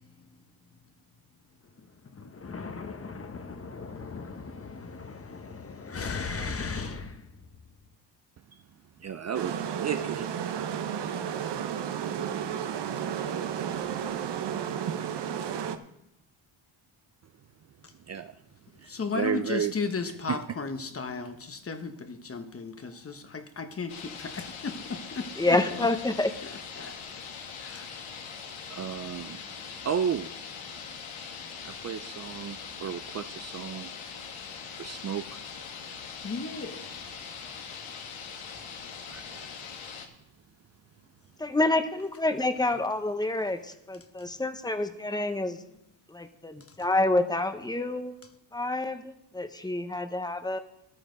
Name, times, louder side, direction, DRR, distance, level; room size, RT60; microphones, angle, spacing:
voice 1, 2.1-7.3 13.8-13.9 18.9-25.9 26.4-27.0 27.6-27.9 36.2-36.9, left 4 dB, 30° left, 1.1 m, -36 dB
voice 2, 9.0-10.3 18.1-18.4 18.8-19.7 20.3-20.4 28.7-29.4 29.8-30.3 31.6-33.9 34.7-35.4 39.1-39.5, right 8 dB, 35° right, 0.5 m, -33 dB
sound 1, 9.3-15.8, right 8 dB, 60° right, 1.0 m, -32 dB
sound 2, 23.9-40.1, left 6 dB, 85° left, 1.6 m, -42 dB
voice 3, 25.4-26.3 41.4-45.6 46.1-48.1 48.5-50.6, left 2 dB, 10° left, 1.0 m, -28 dB
13.5 x 11.5 x 3.9 m
cardioid pair, 95°, 46 cm